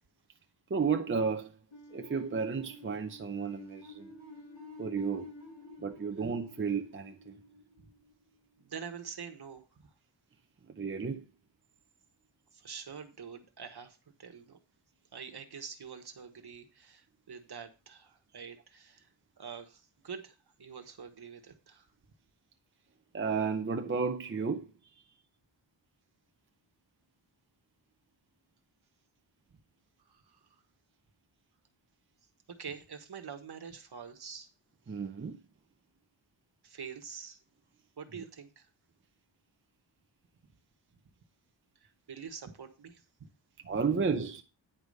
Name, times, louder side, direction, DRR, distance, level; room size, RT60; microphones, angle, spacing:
voice 1, 0.7-1.5 1.9-4.1 4.8-5.3 5.8-7.3 10.7-11.2 23.1-24.7 34.9-35.4 43.7-44.4, right 5 dB, 25° right, 0.6 m, -32 dB
sound 1, 1.7-8.6, left 2 dB, 85° left, 5.0 m, -51 dB
voice 2, 8.6-9.9 12.5-14.6 15.1-19.1 19.4-21.9 25.0-25.2 30.1-30.4 32.6-34.5 36.6-37.4 38.0-38.7 41.8-43.0 43.6-43.8, right 6 dB, 55° right, 1.4 m, -46 dB
9.7 x 5.0 x 5.4 m
wide cardioid pair, 150°, 45 cm